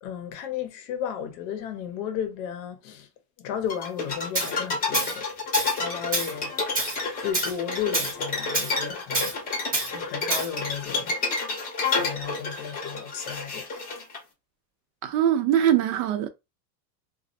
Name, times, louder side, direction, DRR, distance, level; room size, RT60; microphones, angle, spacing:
voice 1, 0.0-3.1 3.4-5.3 5.8-6.8 7.2-9.4 9.9-11.2 11.8-13.7, left 9 dB, 50° left, 0.7 m, -34 dB
sound 1, 3.7-14.2, left 4 dB, 20° left, 0.7 m, -30 dB
Tools, 4.3-4.5 4.9-5.2 5.5-5.8 6.1-6.3 6.8-7.0 7.3-7.5 7.9-8.1 8.5-8.7 9.1-9.3 9.7-9.9 10.3-10.5, right 2 dB, 20° right, 0.7 m, -27 dB
voice 2, 15.0-16.3, right 10 dB, 65° right, 0.6 m, -22 dB
2.3 x 2.1 x 2.6 m
supercardioid pair, 145°, 49 cm